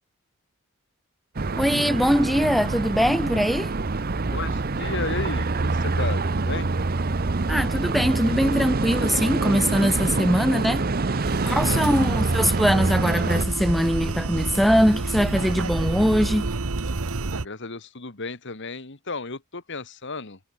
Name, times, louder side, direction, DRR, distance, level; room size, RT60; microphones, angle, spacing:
sound 1, 1.3-13.4, right 3 dB, 45° right, 0.8 m, -25 dB
voice 1, 1.6-3.7 7.5-16.5, equal, ahead, 0.4 m, -22 dB
voice 2, 4.3-6.7 10.0-10.2 11.4-12.2 17.3-20.4, left 3 dB, 55° left, 1.8 m, -34 dB
sound 2, 11.2-17.5, right 3 dB, 75° right, 1.1 m, -29 dB
head